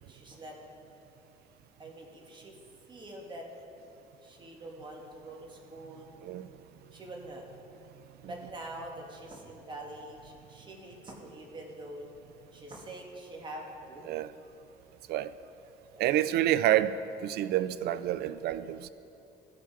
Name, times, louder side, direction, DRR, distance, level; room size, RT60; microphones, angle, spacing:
voice 1, 0.1-0.6 1.8-2.6 2.9-3.5 4.2-6.2 6.9-7.4 8.2-12.1 12.5-14.2 15.9-16.1, right 1 dB, 25° right, 0 dB, 1.7 m, -45 dB
voice 2, 16.0-17.0 17.2-18.9, right 13 dB, 70° right, 15 dB, 0.4 m, -28 dB
15.5 x 5.8 x 4.7 m, 2.9 s
cardioid pair, 110°, 17 cm